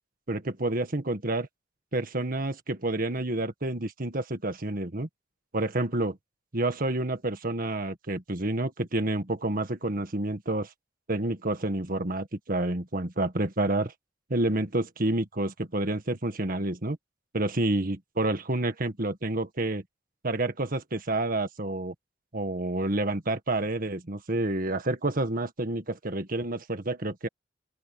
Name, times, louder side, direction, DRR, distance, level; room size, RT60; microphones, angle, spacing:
voice 1, 0.3-1.5 1.9-5.1 5.5-6.2 6.5-10.7 11.1-13.9 14.3-17.0 17.3-19.8 20.2-21.9 22.3-27.3, right 2 dB, 50° right, 1.7 m, -29 dB
open air
head